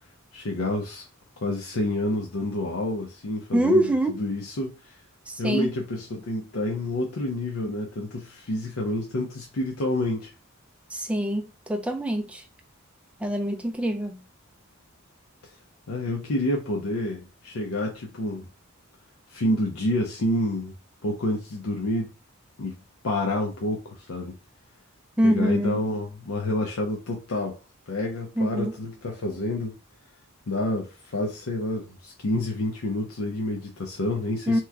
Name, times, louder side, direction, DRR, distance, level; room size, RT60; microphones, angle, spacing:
voice 1, 0.3-1.1 1.4-5.0 5.4-10.3 15.9-18.5 19.3-20.7 21.0-22.1 22.6-22.8 23.0-24.4 25.2-27.6 27.9-29.8 30.5-34.6, left 1 dB, 75° left, 0.6 m, -28 dB
voice 2, 3.5-4.2 5.3-5.7 10.9-12.4 13.2-14.2 25.2-25.8 28.4-28.8 34.5-34.6, right 1 dB, 5° right, 0.4 m, -24 dB
2.9 x 2.2 x 3.5 m
head